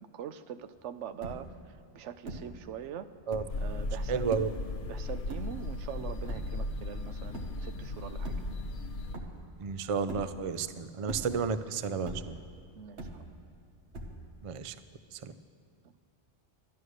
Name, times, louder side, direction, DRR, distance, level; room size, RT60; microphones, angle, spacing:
voice 1, 0.0-3.1 3.6-4.5 4.9-8.3 12.8-13.1, right 8 dB, 90° right, 11 dB, 0.9 m, -43 dB
sound 1, 0.7-0.8 1.0-1.7 2.2-2.6 3.2-3.7 4.3-4.7 5.3-5.9 6.3-6.7 7.3-7.7 8.1-8.8 9.1-9.6 10.1-10.6 11.0-11.6 12.0-12.5 13.0-13.6 13.9-14.5, right 2 dB, 70° right, 1.5 m, -42 dB
sound 2, 3.5-9.2, left 2 dB, 70° left, 1.0 m, -36 dB
voice 2, 4.1-4.5 9.6-12.4 14.4-14.8 15.1-15.3, right 6 dB, 55° right, 12 dB, 0.3 m, -32 dB
13.0 x 11.0 x 6.4 m, 2.3 s
omnidirectional pair, 1.2 m